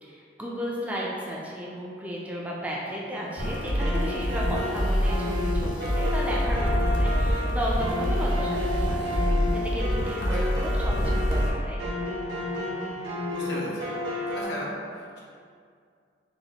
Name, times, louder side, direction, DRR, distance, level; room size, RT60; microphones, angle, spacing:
voice 1, 0.0-11.8, equal, 10° right, -4 dB, 0.4 m, -34 dB
sound 1, 3.4-11.5, equal, 50° left, 0.6 m, -26 dB
sound 2, 3.4-14.4, left 1 dB, 65° right, 0.7 m, -32 dB
voice 2, 10.2-10.6 13.3-13.9 14.3-15.2, equal, 75° left, -5 dB, 0.8 m, -36 dB
4.1 x 2.5 x 2.8 m, 2.2 s
head